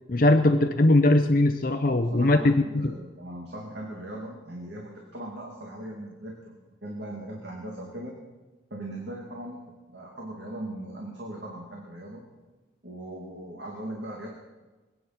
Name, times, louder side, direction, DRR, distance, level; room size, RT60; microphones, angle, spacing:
voice 1, 0.1-3.0, left 2 dB, 45° left, 7 dB, 0.7 m, -20 dB
voice 2, 1.9-6.5 6.8-8.2 8.7-9.6 9.9-12.3 12.8-14.3, right 1 dB, 60° right, -1 dB, 2.3 m, -39 dB
22.0 x 9.5 x 5.9 m, 1.2 s
head